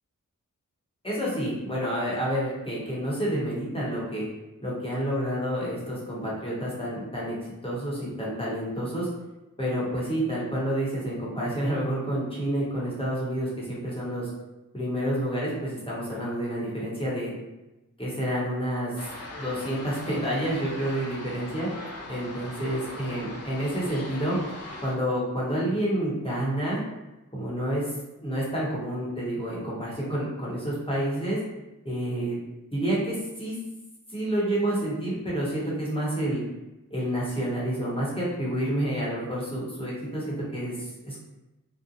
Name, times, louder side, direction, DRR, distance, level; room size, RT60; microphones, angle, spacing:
voice 1, 1.0-4.2 4.6-7.4 7.6-9.1 9.6-14.3 14.7-17.3 18.0-18.9 19.4-21.7 22.1-24.4 24.8-26.8 27.3-27.9 28.2-31.4 31.8-32.4 32.7-33.6 34.1-36.4 36.9-41.2, right 1 dB, 15° left, -7 dB, 0.9 m, -29 dB
sound 1, 19.0-24.9, left 2 dB, 50° left, 0.5 m, -40 dB
2.5 x 2.1 x 2.7 m, 1.0 s
wide cardioid pair, 70°, 33 cm